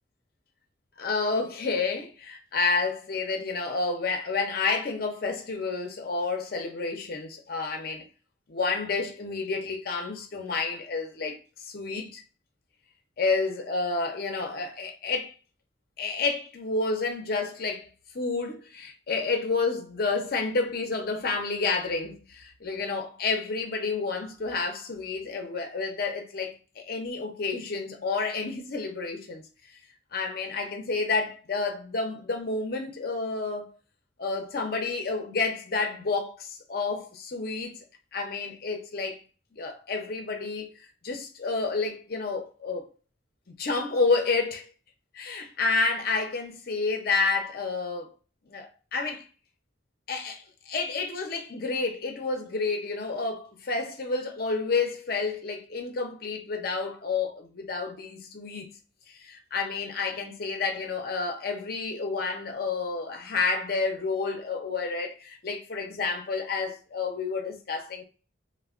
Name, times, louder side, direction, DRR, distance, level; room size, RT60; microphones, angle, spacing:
voice 1, 1.0-8.1 8.5-11.4 11.6-12.2 13.2-15.3 16.0-29.4 30.1-33.7 34.2-37.8 38.1-39.2 39.5-40.7 41.0-42.9 43.6-44.7 45.1-48.1 48.5-49.2 50.1-58.8 59.1-68.0, left 4 dB, 50° left, 0.6 m, -30 dB
3.3 x 2.1 x 2.4 m
head